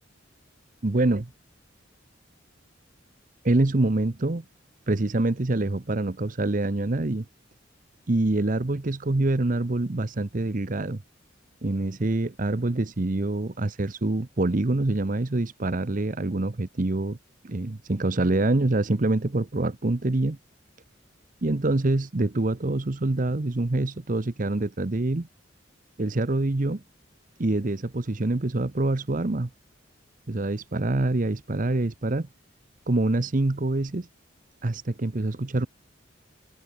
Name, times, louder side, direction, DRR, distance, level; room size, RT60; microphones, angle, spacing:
voice 1, 0.8-1.2 3.4-4.4 4.9-7.2 8.1-11.0 11.6-17.2 17.4-20.4 21.4-25.3 26.0-26.8 27.4-29.5 30.3-32.3 32.9-34.1 34.6-35.7, right 2 dB, 45° right, 0.8 m, -25 dB
open air
head